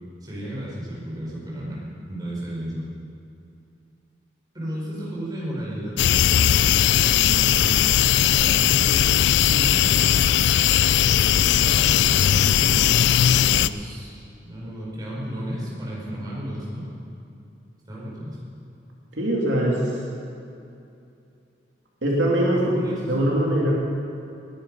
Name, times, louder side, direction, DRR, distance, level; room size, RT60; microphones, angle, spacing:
voice 1, 0.2-1.8 2.1-2.8 4.5-7.8 8.3-9.1 9.4-10.3 10.5-10.7 11.1-13.0 13.3-16.9 17.9-18.5 22.5-23.2, equal, 20° right, -6 dB, 4.7 m, -33 dB
sound 1, 6.0-13.7, left 10 dB, 70° left, 0.3 m, -18 dB
voice 2, 19.2-19.8 22.0-23.7, right 1 dB, 80° right, -3 dB, 2.5 m, -22 dB
20.0 x 10.5 x 5.4 m, 2.6 s
head